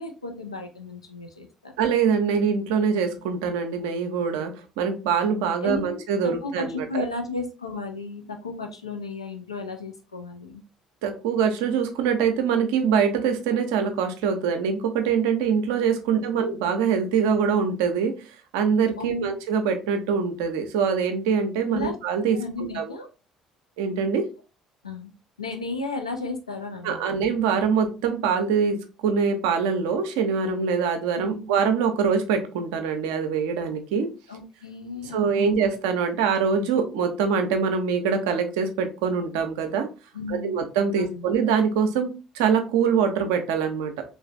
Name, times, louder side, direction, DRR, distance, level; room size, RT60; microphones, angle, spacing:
voice 1, 0.0-1.7 5.6-10.6 19.0-19.3 21.7-21.9 22.3-23.1 24.8-25.1 25.4-27.0 31.2-31.5 34.3-35.6 40.1-40.6 41.0-41.3, left 3 dB, 85° left, 5 dB, 0.4 m, -34 dB
voice 2, 1.8-7.1 11.0-18.1 18.5-22.9 23.8-24.3 26.8-34.1 35.1-39.9 40.3-44.0, right 6 dB, 65° right, 7 dB, 0.5 m, -24 dB
3.1 x 2.5 x 2.3 m, 0.31 s
figure-of-eight pair, 50°, 3 cm